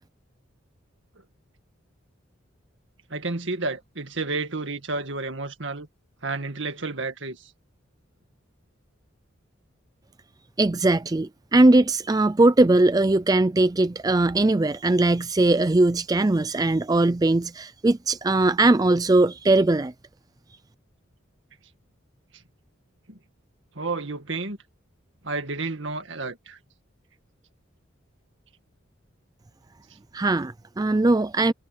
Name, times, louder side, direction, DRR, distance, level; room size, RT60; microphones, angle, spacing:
voice 1, 3.1-5.9 6.2-7.5 23.1-23.2 23.8-24.6 25.2-26.6, right 3 dB, 65° right, 2.0 m, -31 dB
voice 2, 10.6-19.9 30.1-31.5, right 2 dB, 20° right, 0.4 m, -20 dB
head